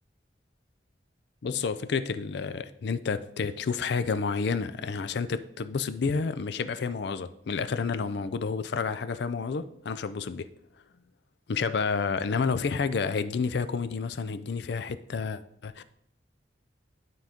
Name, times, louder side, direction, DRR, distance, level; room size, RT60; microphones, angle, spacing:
voice 1, 1.4-10.5 11.5-15.8, left 5 dB, 65° left, 0.4 m, -30 dB
11.5 x 3.8 x 3.6 m
head